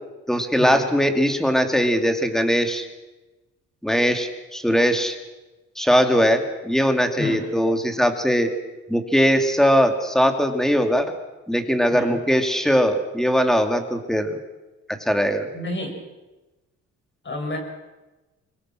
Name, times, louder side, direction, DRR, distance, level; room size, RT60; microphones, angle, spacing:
voice 1, 0.3-2.9 3.8-5.2 5.8-8.5 8.9-11.1 11.5-14.4 14.9-15.5, equal, ahead, 5 dB, 2.9 m, -20 dB
voice 2, 15.5-15.9 17.2-17.6, left 1 dB, 40° left, 3 dB, 7.0 m, -29 dB
25.5 x 21.5 x 6.3 m, 1.1 s
cardioid pair, 90°, 30 cm